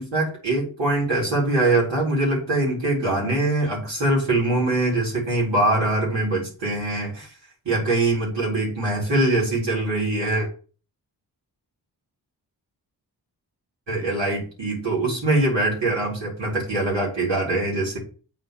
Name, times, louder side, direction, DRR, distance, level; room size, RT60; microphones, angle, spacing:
voice 1, 0.0-7.3 7.7-10.5 13.9-18.0, right 2 dB, 80° right, -5 dB, 3.7 m, -23 dB
7.8 x 4.5 x 4.6 m, 0.39 s
cardioid pair, 45°, 43 cm